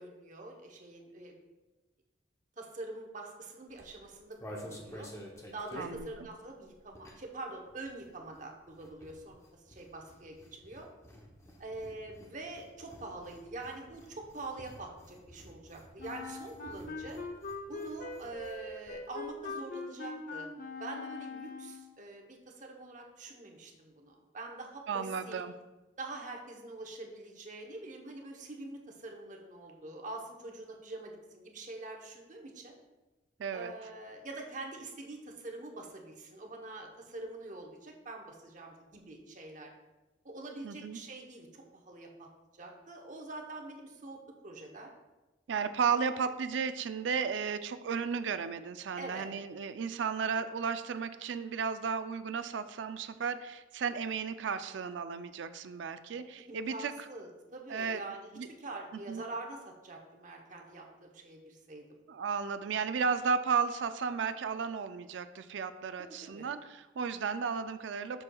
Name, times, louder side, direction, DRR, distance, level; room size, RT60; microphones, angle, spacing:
voice 1, 0.0-1.4 2.6-5.1 5.5-10.9 11.6-17.2 17.7-20.5 20.8-25.4 26.0-32.7 33.5-39.7 40.2-42.3 42.5-44.9 49.0-49.3 56.5-58.3 58.6-61.8 66.0-66.5, right 2 dB, 45° right, 2 dB, 0.9 m, -45 dB
sound 1, 3.7-7.4 7.7-18.6 18.9-19.0 19.2-19.5, equal, 15° left, 0.8 m, -50 dB
voice 2, 5.8-6.3 24.9-25.5 33.4-33.7 40.6-41.0 45.5-56.9 57.7-58.0 58.3-58.5 59.1-59.2 62.1-68.2, right 6 dB, 80° right, 11 dB, 0.4 m, -34 dB
Wind instrument woodwind instrument, 16.0-21.9, left 3 dB, 50° left, 0.6 m, -42 dB
7.4 x 6.3 x 2.3 m, 1.1 s
head